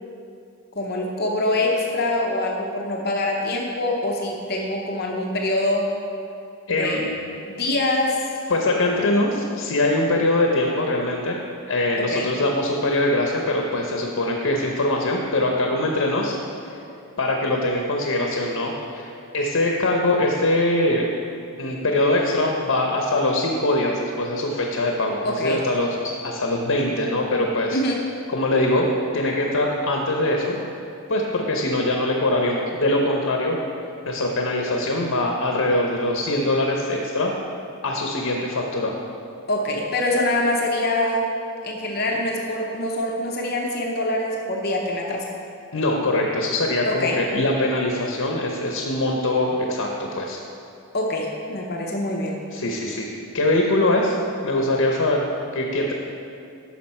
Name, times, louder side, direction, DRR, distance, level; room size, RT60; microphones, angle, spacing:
voice 1, 0.8-5.9 6.7-7.1 7.5-8.2 12.1-12.3 25.2-25.7 27.7-28.1 39.5-41.3 41.6-45.3 46.9-47.2 50.9-52.4, left 1 dB, 45° left, 0 dB, 0.8 m, -24 dB
voice 2, 6.7-7.0 8.5-11.4 11.7-16.4 16.6-16.8 17.2-21.1 21.6-27.8 28.3-30.6 31.1-33.6 34.1-37.3 37.8-38.9 45.7-50.4 52.5-54.2 54.4-55.2 55.5-55.9, left 1 dB, 75° left, 0 dB, 0.8 m, -22 dB
10.5 x 6.1 x 4.3 m, 2.6 s
head